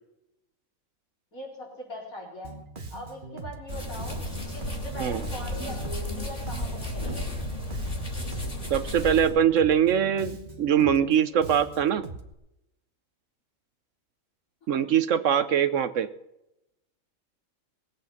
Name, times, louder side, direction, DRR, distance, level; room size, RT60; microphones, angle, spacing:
voice 1, 1.3-2.5 2.9-7.3, equal, 85° left, -3 dB, 4.7 m, -41 dB
Bass guitar, 2.4-12.3, right 3 dB, 40° right, 1.4 m, -42 dB
sound 1, 3.7-9.3, left 1 dB, 25° left, 2.6 m, -33 dB
voice 2, 8.7-12.0 14.7-16.1, right 9 dB, 65° right, 12 dB, 1.1 m, -23 dB
20.0 x 8.5 x 5.8 m, 0.87 s
omnidirectional pair, 1.4 m